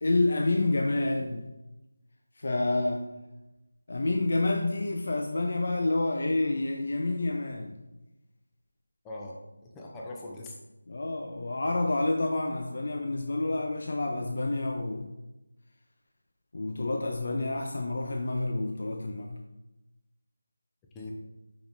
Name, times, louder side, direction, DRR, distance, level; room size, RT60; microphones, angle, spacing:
voice 1, 0.0-1.5 2.4-3.2 3.9-7.8 10.9-15.1 16.5-19.4, left 2 dB, 55° left, 3 dB, 0.5 m, -28 dB
voice 2, 9.0-10.5 20.9-21.1, left 2 dB, 10° left, -2 dB, 0.6 m, -41 dB
6.8 x 5.4 x 2.6 m, 0.99 s
figure-of-eight pair, 165°, 0 cm